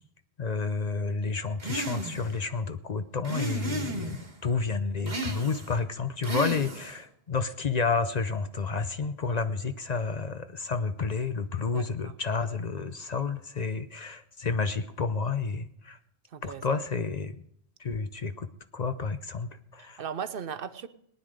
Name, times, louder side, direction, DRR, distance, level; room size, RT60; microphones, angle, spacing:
voice 1, 0.4-4.2 4.4-16.0 16.4-17.4 17.8-20.0, left 4 dB, 45° left, 11 dB, 0.7 m, -30 dB
sound 1, 1.6-2.4 3.2-4.3 5.1-5.8 6.2-7.0, right 2 dB, 45° right, 1.7 m, -34 dB
voice 2, 11.7-12.1 16.3-16.8 19.8-20.9, right 7 dB, 60° right, 13 dB, 0.9 m, -38 dB
19.0 x 10.0 x 5.0 m, 0.70 s
omnidirectional pair, 1.1 m